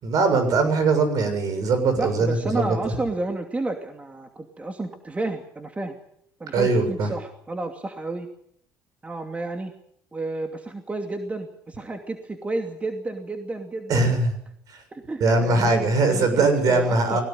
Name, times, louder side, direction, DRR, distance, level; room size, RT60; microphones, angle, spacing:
voice 1, 0.0-3.0 6.5-7.1 13.9-14.3 15.2-17.2, right 3 dB, 60° right, 8 dB, 7.1 m, -21 dB
voice 2, 2.0-6.0 6.4-8.3 9.0-9.7 10.1-14.1 14.9-17.2, right 2 dB, 20° right, 5 dB, 2.7 m, -31 dB
21.0 x 17.5 x 9.2 m, 0.71 s
supercardioid pair, 95°, 7 cm